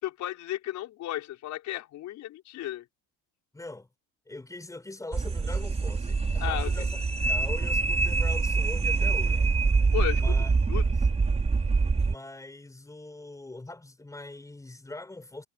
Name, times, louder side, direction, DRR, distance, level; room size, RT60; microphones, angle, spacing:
voice 1, 0.0-2.9 6.4-6.7 9.9-10.2 10.7-10.9, left 13 dB, 60° left, 5.5 m, -33 dB
voice 2, 3.5-3.9 4.3-9.6 10.1-11.1 12.0-15.5, left 2 dB, 10° left, 5.3 m, -42 dB
sound 1, 5.1-12.2, right 4 dB, 20° right, 4.3 m, -25 dB
cardioid pair, 135°, 33 cm